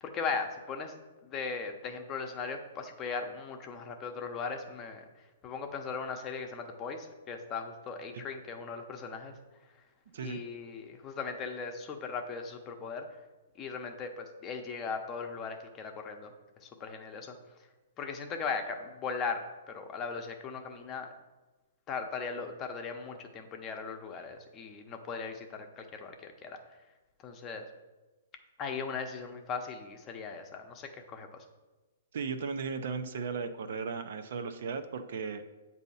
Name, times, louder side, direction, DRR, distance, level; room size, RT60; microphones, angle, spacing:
voice 1, 0.0-5.0 5.4-9.3 10.2-13.1 13.6-16.3 16.6-17.4 18.0-21.1 21.9-26.6 27.2-27.6 28.6-31.4, left 5 dB, 25° left, 4 dB, 0.8 m, -38 dB
voice 2, 32.1-35.4, right 5 dB, 65° right, 8 dB, 0.6 m, -36 dB
8.1 x 2.8 x 5.5 m, 1.2 s
hypercardioid pair, 140°, 0 cm